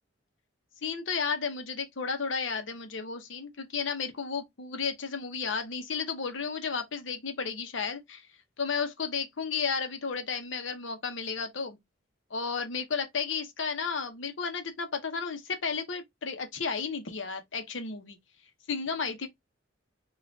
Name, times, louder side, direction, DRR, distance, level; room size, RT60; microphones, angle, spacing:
voice 1, 0.8-8.3 8.6-11.8 12.3-18.2 18.7-19.3, left 5 dB, 80° left, 0.8 m, -33 dB
5.0 x 2.4 x 2.6 m
head